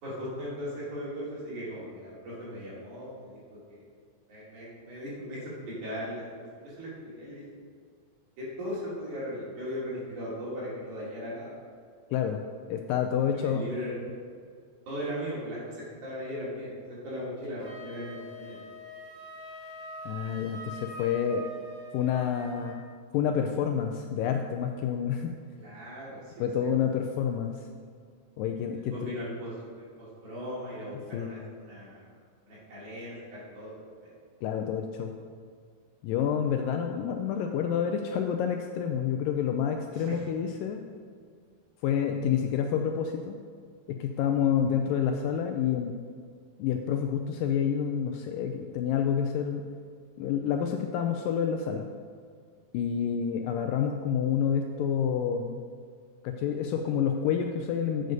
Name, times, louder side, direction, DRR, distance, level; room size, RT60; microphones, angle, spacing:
voice 1, 0.0-3.4 3.7-3.8 4.3-6.2 6.5-7.4 8.4-11.5 13.3-13.9 14.9-16.7 17.0-18.6 25.6-26.5 28.9-29.5 30.0-32.1 32.5-34.1 40.0-40.2, equal, 55° right, -8 dB, 4.0 m, -38 dB
voice 2, 12.1-12.4 12.7-13.7 20.1-21.4 21.9-22.8 23.1-25.3 26.4-27.7 28.4-29.1 31.1-31.5 34.4-35.1 36.0-40.8 41.8-43.4 43.9-46.0 46.6-49.7 50.2-51.9 52.7-55.6 56.2-58.1, left 8 dB, 80° left, 4 dB, 2.0 m, -28 dB
Wind instrument woodwind instrument, 17.6-22.8, equal, 40° right, 2.6 m, -43 dB
7.9 x 6.4 x 5.3 m, 2.1 s
omnidirectional pair, 4.2 m